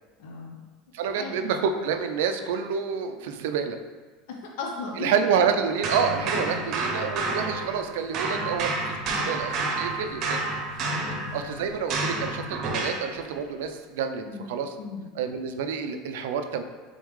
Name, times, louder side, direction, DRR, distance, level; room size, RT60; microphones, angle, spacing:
voice 1, 0.2-0.6 1.2-1.5 4.3-5.1 9.0-9.3 10.9-11.2 12.8-12.9 14.3-14.5 14.8-15.1, left 4 dB, 75° left, 0 dB, 0.6 m, -37 dB
voice 2, 0.9-3.8 5.0-10.4 11.3-14.7 15.2-16.6, right 6 dB, 80° right, 7 dB, 0.3 m, -28 dB
sound 1, 5.8-13.1, right 3 dB, 50° right, 0.7 m, -29 dB
3.8 x 3.6 x 3.1 m, 1.5 s
supercardioid pair, 125°, 0 cm